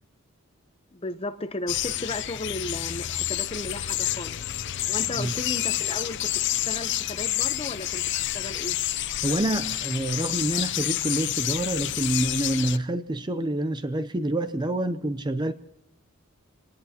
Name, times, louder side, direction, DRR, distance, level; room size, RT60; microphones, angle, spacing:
voice 1, 0.9-4.4 4.9-8.8, left 2 dB, 25° left, 0.8 m, -35 dB
sound 1, 1.7-12.8, left 13 dB, 55° left, 0.5 m, -29 dB
sound 2, 3.7-8.8, left 1 dB, 35° right, 5.2 m, -52 dB
voice 2, 9.2-15.5, right 1 dB, 20° right, 0.5 m, -27 dB
26.0 x 19.0 x 2.9 m
head